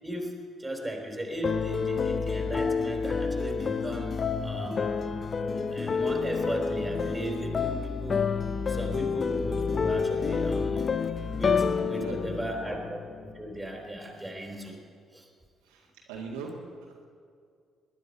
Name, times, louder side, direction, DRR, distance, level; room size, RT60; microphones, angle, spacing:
voice 1, 0.0-4.2 4.4-4.9 5.5-8.2 8.7-10.9 11.4-14.8 15.1-15.3, right 1 dB, 10° right, 1 dB, 3.8 m, -36 dB
sound 1, 1.4-13.6, left 5 dB, 40° left, 0.6 m, -29 dB
voice 2, 11.7-12.4 15.7-16.5, right 5 dB, 75° right, -2 dB, 1.9 m, -40 dB
20.5 x 10.5 x 5.4 m, 2.2 s
hypercardioid pair, 45°, 0 cm